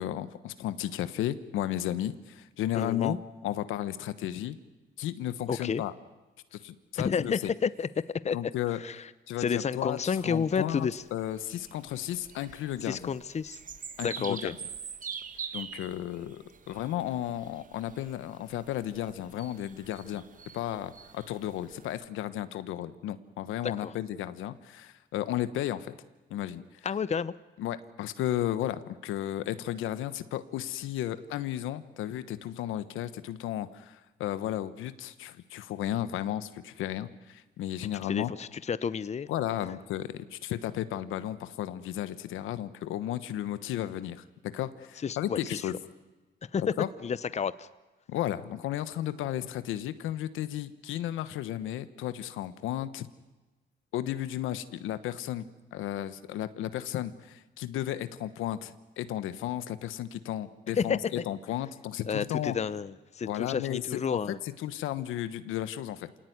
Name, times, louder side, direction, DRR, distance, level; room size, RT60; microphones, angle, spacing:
voice 1, 0.0-3.2 3.4-4.6 5.0-5.9 6.5-7.3 8.3-8.8 9.3-10.0 10.2-13.1 14.0-14.5 15.5-20.2 20.5-25.9 26.3-26.9 27.6-38.3 39.3-45.7 46.6-46.9 48.1-53.1 53.9-62.5 63.3-64.2 64.6-66.1, left 12 dB, 90° left, 13 dB, 1.2 m, -34 dB
voice 2, 2.7-3.2 5.5-5.8 7.0-7.9 8.2-8.4 8.7-9.1 9.4-11.0 12.8-13.6 14.0-14.5 23.6-23.9 26.8-27.3 38.0-39.3 45.0-45.7 46.4-46.6 47.0-47.7 60.8-61.2 62.1-64.4, left 6 dB, 35° left, 16 dB, 0.8 m, -31 dB
sound 1, 10.0-22.0, right 6 dB, 40° right, 1.5 m, -45 dB
27.0 x 18.0 x 9.6 m, 1.2 s
cardioid pair, 90°, 20 cm